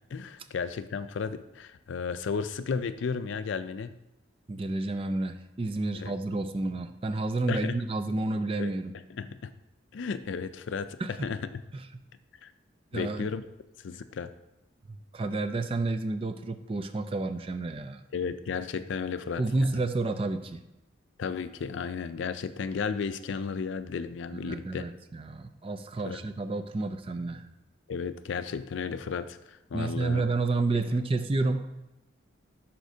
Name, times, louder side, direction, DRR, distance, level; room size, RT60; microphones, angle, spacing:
voice 1, 0.1-3.9 5.9-6.1 7.5-7.7 8.6-8.7 9.1-9.5 9.9-11.6 12.4-12.5 12.9-13.5 13.8-14.3 18.1-19.8 21.2-24.9 26.0-26.2 27.9-30.2, left 5 dB, 70° left, 12 dB, 0.4 m, -34 dB
voice 2, 4.5-8.9 11.0-11.2 11.7-11.9 12.9-13.3 14.9-18.0 19.4-20.6 24.3-27.5 29.7-31.7, right 2 dB, 30° right, 9 dB, 0.4 m, -30 dB
11.0 x 4.3 x 2.7 m, 0.94 s
head